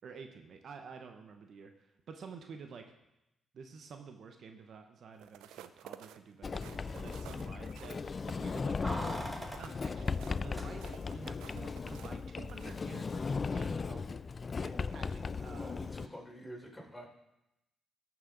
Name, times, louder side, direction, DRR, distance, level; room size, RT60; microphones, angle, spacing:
voice 1, 0.0-2.9 3.5-14.2 14.6-15.8, right 5 dB, 65° right, 5 dB, 0.9 m, -51 dB
sound 1, 5.1-13.3 13.8-14.0, right 11 dB, 85° right, 0.4 m, -53 dB
Sliding door, 6.4-16.1, left 4 dB, 45° left, 0.3 m, -37 dB
Keys jangling, 8.8-11.2 11.4-11.5, equal, 5° right, 1.8 m, -43 dB
voice 2, 15.4-17.1, equal, 15° left, -2 dB, 4.1 m, -48 dB
14.5 x 6.1 x 3.9 m, 0.90 s
supercardioid pair, 55°, 0 cm